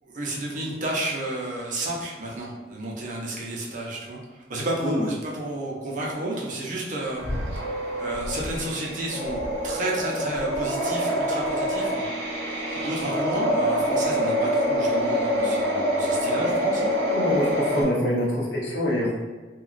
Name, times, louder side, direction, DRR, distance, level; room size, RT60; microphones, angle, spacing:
voice 1, 0.0-7.2 8.0-9.4 9.6-12.0 12.7-16.9, right 1 dB, 45° right, -3 dB, 0.5 m, -31 dB
sound 1, 7.0-17.8, equal, 90° right, 0.6 m, -26 dB
sound 2, 7.2-7.7 8.1-8.7 9.2-9.8 10.3-10.8 11.4-11.8 12.5-12.9 13.8-13.9, equal, 45° left, 0.4 m, -35 dB
voice 2, 17.1-19.1, equal, 65° left, -5 dB, 0.8 m, -25 dB
2.9 x 2.2 x 2.4 m, 1.3 s
head